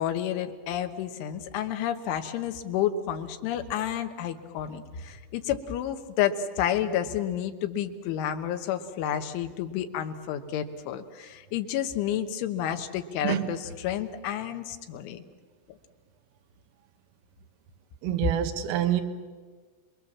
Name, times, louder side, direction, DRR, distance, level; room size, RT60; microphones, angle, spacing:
voice 1, 0.0-15.2, left 10 dB, 75° left, 7 dB, 3.5 m, -30 dB
voice 2, 18.0-19.0, right 11 dB, 80° right, 6 dB, 3.9 m, -26 dB
29.5 x 21.5 x 7.4 m, 1.5 s
omnidirectional pair, 5.9 m